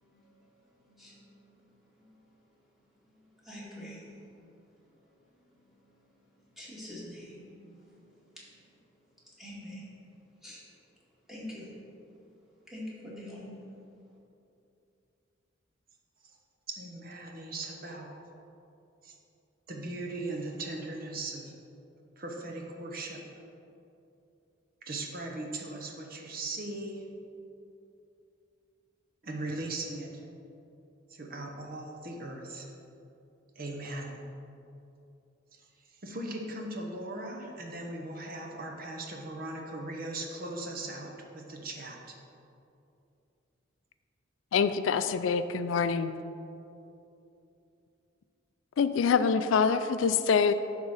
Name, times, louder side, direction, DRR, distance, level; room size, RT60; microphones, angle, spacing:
voice 1, 0.0-2.3 3.1-4.4 4.9-8.5 9.3-9.9 10.4-10.6 11.3-11.9 12.7-13.6, left 1 dB, ahead, -7 dB, 1.9 m, -47 dB
voice 2, 16.7-18.1 19.0-19.2 19.7-21.6 22.2-23.2 24.8-27.1 29.2-30.2 31.1-32.7 33.6-34.2 35.5-42.2, right 2 dB, 50° right, 1 dB, 0.9 m, -39 dB
voice 3, 44.5-46.2 48.8-50.5, left 6 dB, 80° left, 12 dB, 0.4 m, -25 dB
10.5 x 3.7 x 6.3 m, 2.7 s
head